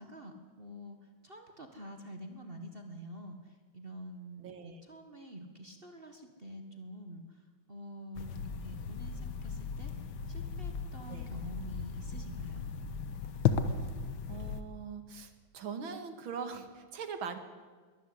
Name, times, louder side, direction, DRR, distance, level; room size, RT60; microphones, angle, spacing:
voice 1, 0.0-7.4 7.7-9.9 10.3-12.7, equal, 30° right, 5 dB, 1.6 m, -47 dB
voice 2, 4.4-4.8 11.1-11.3 14.3-17.4, right 6 dB, 80° right, 9 dB, 2.5 m, -42 dB
sound 1, 8.1-14.6, left 6 dB, 75° left, 1.9 m, -36 dB
22.5 x 13.0 x 9.8 m, 1.4 s
omnidirectional pair, 2.2 m